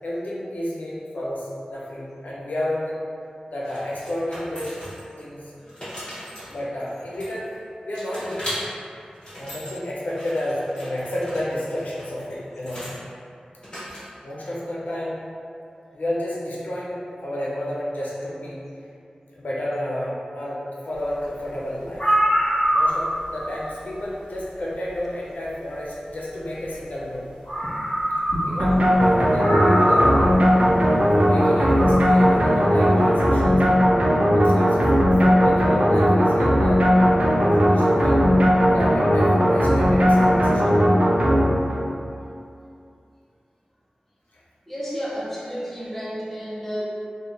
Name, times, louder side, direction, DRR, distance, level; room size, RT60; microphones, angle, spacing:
voice 1, 0.0-3.0 3.5-4.7 5.2-5.4 6.5-7.5 7.8-8.6 9.3-13.0 14.2-15.2 15.9-18.6 19.4-22.0 22.7-27.3 28.4-30.7 31.1-33.6 34.3-34.9 35.2-38.2 38.7-40.7, left 1 dB, 80° left, -6 dB, 0.5 m, -30 dB
sound 1, 3.6-5.2 5.6-7.6 7.9-8.6 9.0-9.7 10.1-13.0 13.6-14.3, equal, 35° left, 1.3 m, -38 dB
sound 2, 21.5-21.6 21.9-23.3 24.7-24.8 27.0-27.1 27.5-28.6 28.9-29.0 29.4-30.3 31.4-32.0, equal, 60° left, 1.2 m, -22 dB
sound 3, 28.6-41.9, equal, 55° right, 0.4 m, -18 dB
voice 2, 44.7-46.8, equal, 10° left, -8 dB, 0.6 m, -31 dB
2.8 x 2.1 x 2.4 m, 2.5 s
wide cardioid pair, 55°, 3 cm